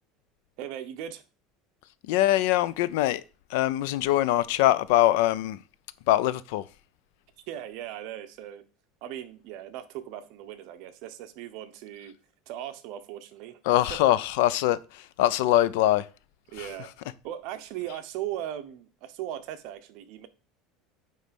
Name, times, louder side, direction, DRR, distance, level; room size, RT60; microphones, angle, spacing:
voice 1, 0.6-1.2 7.5-8.6 9.0-12.1 12.5-14.1 16.5-16.9 17.2-20.3, right 11 dB, 55° right, 0.8 m, -38 dB
voice 2, 2.1-3.2 3.5-5.6 6.1-6.7 13.7-16.1 16.6-16.7, left 14 dB, 70° left, 0.4 m, -23 dB
9.4 x 3.2 x 5.2 m
cardioid pair, 165°, 0 cm